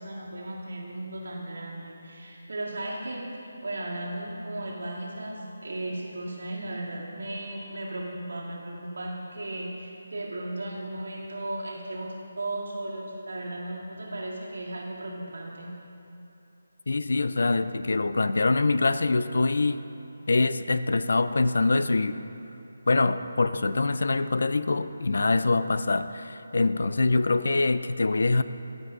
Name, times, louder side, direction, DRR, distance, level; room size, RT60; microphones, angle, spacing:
voice 1, 0.0-15.7, right 1 dB, 70° right, -3 dB, 2.0 m, -36 dB
voice 2, 16.9-19.8 20.3-22.2 22.9-28.4, left 3 dB, 65° left, 13 dB, 0.3 m, -24 dB
14.5 x 5.4 x 3.7 m, 3.0 s
figure-of-eight pair, 155°, 0 cm